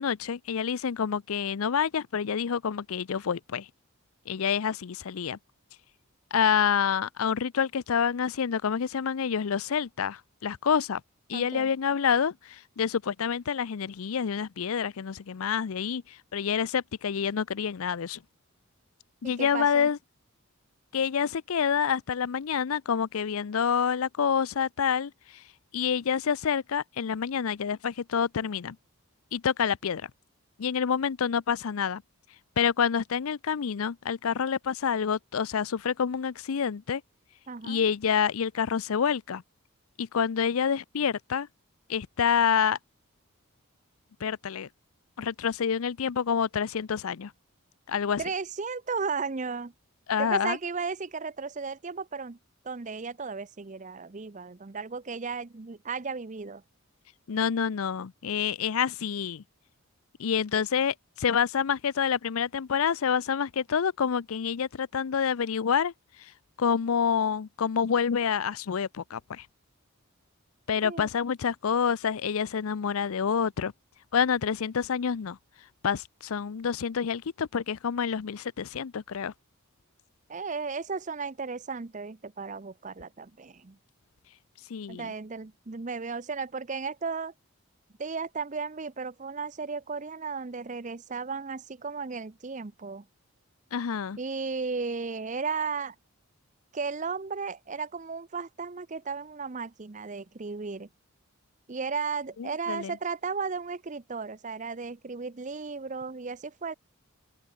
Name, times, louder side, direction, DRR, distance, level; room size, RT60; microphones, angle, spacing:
voice 1, 0.0-3.7 4.3-5.4 6.3-11.0 11.3-18.2 19.2-20.0 20.9-25.1 25.7-28.8 29.3-30.0 30.6-32.0 32.6-37.0 37.6-39.4 40.0-41.5 41.9-42.8 44.2-44.7 45.2-47.3 47.9-48.2 50.1-50.6 57.3-59.4 60.2-65.9 66.6-69.5 70.7-73.7 74.1-75.4 75.8-79.3 84.7-85.1 93.7-94.2 102.4-102.9, left 7 dB, 75° left, 0.5 m, -27 dB
voice 2, 11.3-11.7 19.2-19.9 37.5-37.8 48.2-49.7 50.2-52.4 52.6-56.6 70.8-71.1 80.3-83.8 84.9-87.3 88.0-93.0 94.2-95.9 96.7-100.9 101.7-106.7, right 5 dB, 35° right, 0.6 m, -35 dB
open air
head